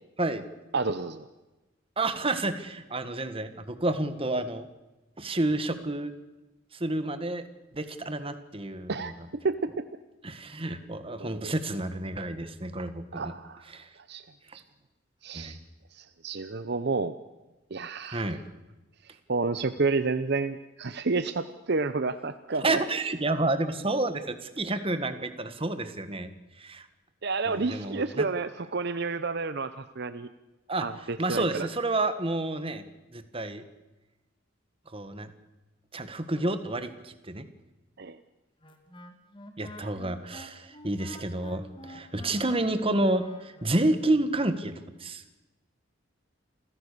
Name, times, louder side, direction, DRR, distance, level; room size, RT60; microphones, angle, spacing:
voice 1, 0.7-1.2 8.9-9.1 9.4-9.8 11.2-11.5 13.1-13.6 14.1-14.2 15.2-15.6 15.9-17.2 17.7-18.3 19.3-22.8 27.2-30.3 30.8-31.7 38.0-38.2, right 4 dB, 55° right, 11 dB, 0.8 m, -30 dB
voice 2, 2.0-4.7 5.2-6.1 6.7-7.4 7.7-9.1 10.2-13.3 13.7-13.9 14.5-14.6 15.3-15.6 18.1-18.4 22.6-26.3 26.6-26.9 27.5-28.2 30.7-30.9 31.2-32.8 33.1-33.6 34.9-35.3 35.9-37.5 39.6-45.2, right 2 dB, 30° right, 10 dB, 1.6 m, -30 dB
Wind instrument woodwind instrument, 38.6-44.0, left 1 dB, 25° left, 2.3 m, -47 dB
28.0 x 16.0 x 6.8 m, 1.1 s
head